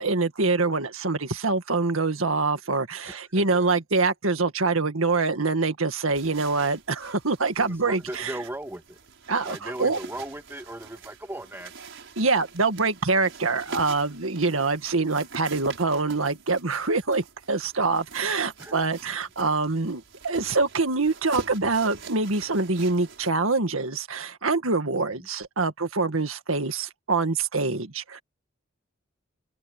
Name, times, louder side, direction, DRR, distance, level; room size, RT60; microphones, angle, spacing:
voice 1, 0.0-8.3 9.3-10.0 12.2-28.2, right 3 dB, 85° right, 1.9 m, -25 dB
voice 2, 3.0-3.7 7.6-9.0 9.4-11.7 18.6-18.8 25.1-25.3, right 1 dB, 10° right, 1.8 m, -37 dB
sound 1, 6.1-23.3, right 3 dB, 65° right, 7.1 m, -43 dB
open air
head